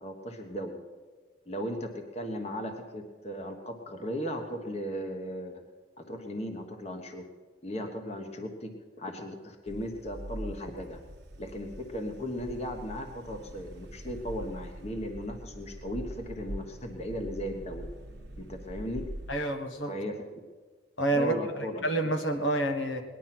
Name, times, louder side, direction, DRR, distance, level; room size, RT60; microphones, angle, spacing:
voice 1, 0.0-0.8 1.5-5.6 6.0-7.3 7.6-11.0 11.4-17.9 18.4-19.1 19.8-20.2 21.1-21.8, equal, 35° left, 4 dB, 1.3 m, -37 dB
sound 1, 9.7-19.4, right 1 dB, 55° right, 1.2 m, -43 dB
voice 2, 19.3-19.9 21.0-23.0, right 1 dB, 80° left, 6 dB, 1.6 m, -29 dB
19.5 x 11.0 x 6.0 m, 1.5 s
head